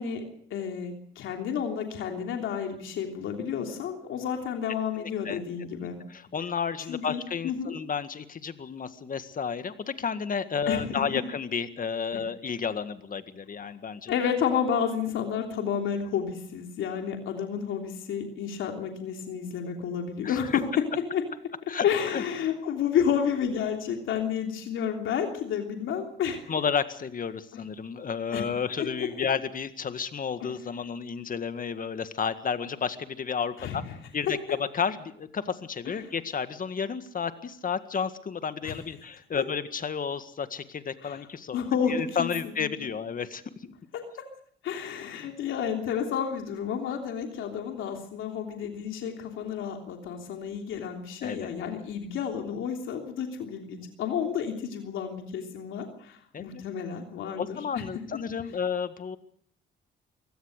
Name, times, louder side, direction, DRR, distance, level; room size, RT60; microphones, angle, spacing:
voice 1, 0.0-6.0 6.9-7.7 10.7-11.2 12.1-12.2 14.1-20.6 21.1-21.2 21.8-26.5 28.3-28.4 29.0-29.1 30.4-30.5 33.6-33.9 38.6-38.8 41.0-41.2 41.5-42.9 43.9-44.0 44.6-57.8, left 8 dB, 80° left, 3 dB, 3.2 m, -31 dB
voice 2, 5.0-5.4 6.1-14.1 20.2-20.4 21.7-21.8 22.1-22.2 26.5-33.8 34.1-34.4 34.7-41.6 41.9-43.7 51.2-51.5 56.3-56.6 57.4-59.2, left 6 dB, 45° left, 11 dB, 1.8 m, -32 dB
24.0 x 17.5 x 6.6 m, 0.62 s
cardioid pair, 90°, 20 cm